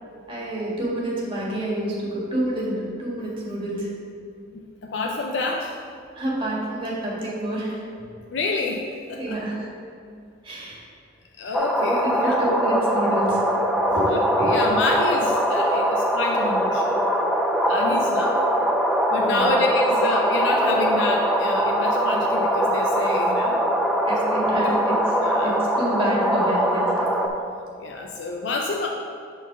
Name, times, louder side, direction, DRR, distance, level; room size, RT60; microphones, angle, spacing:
voice 1, 0.3-3.9 6.2-7.8 9.2-9.7 10.4-10.8 11.9-13.4 13.9-14.5 19.2-19.5 24.0-25.0 25.4-27.1, right 1 dB, 30° right, -4 dB, 1.7 m, -28 dB
voice 2, 4.5-5.8 8.3-9.4 11.4-12.4 14.1-17.0 17.7-18.4 19.1-23.6 24.6-24.8 25.2-25.5 27.8-28.9, left 3 dB, 70° left, 1 dB, 0.5 m, -28 dB
sound 1, 11.5-27.3, equal, ahead, 0.4 m, -22 dB
6.9 x 4.0 x 5.8 m, 2.4 s
head